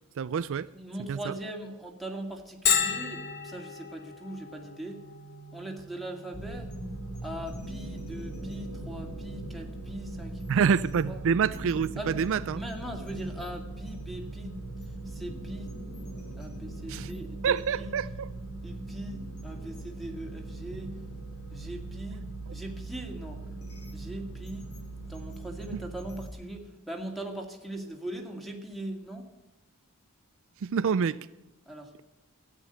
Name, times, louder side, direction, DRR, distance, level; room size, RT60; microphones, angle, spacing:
voice 1, 0.2-0.7 1.1-1.3 10.5-12.6 16.9-17.1 17.4-18.3 30.6-31.2, right 6 dB, 60° right, 0.4 m, -27 dB
voice 2, 0.7-5.0 5.5-6.7 7.2-10.7 11.1-11.2 12.0-12.2 12.5-14.5 15.1-15.7 16.4-17.9 18.6-20.9 21.5-23.4 23.9-24.6 25.1-29.2 31.7-32.0, right 1 dB, ahead, 2.1 m, -40 dB
Bell, 2.7-18.1, left 7 dB, 45° left, 1.3 m, -38 dB
sound 1, 6.3-26.3, right 2 dB, 80° left, 3.4 m, -40 dB
13.5 x 9.3 x 7.9 m
head